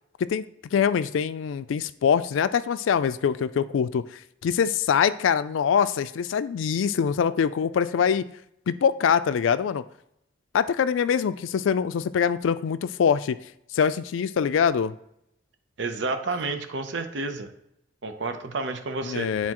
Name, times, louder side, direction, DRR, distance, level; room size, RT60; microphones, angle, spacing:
voice 1, 0.7-4.0 4.4-8.2 8.7-9.8 10.5-13.4 13.7-14.9 19.0-19.5, left 7 dB, 85° left, 14 dB, 0.3 m, -23 dB
voice 2, 15.8-17.5 18.0-19.3, right 3 dB, 70° right, 7 dB, 0.7 m, -30 dB
9.6 x 4.1 x 3.0 m, 0.78 s
head